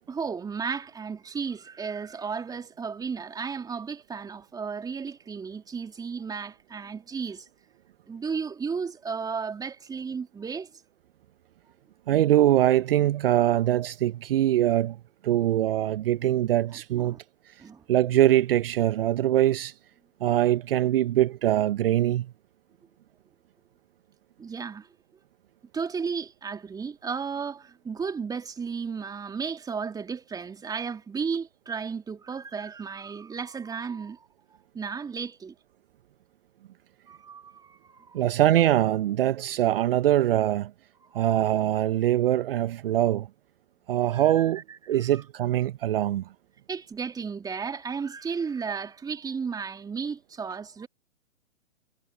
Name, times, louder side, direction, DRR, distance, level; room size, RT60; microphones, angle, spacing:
voice 1, 0.1-7.5 8.1-10.7 16.9-17.2 17.6-17.8 24.4-24.9 25.7-34.2 34.7-35.5 37.1-38.2 41.0-41.3 44.1-45.1 46.7-50.9, right 5 dB, 10° right, 2.7 m, -34 dB
voice 2, 12.1-15.0 15.2-17.2 17.5-17.6 17.9-19.7 20.2-22.3 38.1-40.7 41.1-43.3 43.9-44.6 44.9-46.3, right 13 dB, 45° right, 1.2 m, -23 dB
figure-of-eight pair, 120°, 39 cm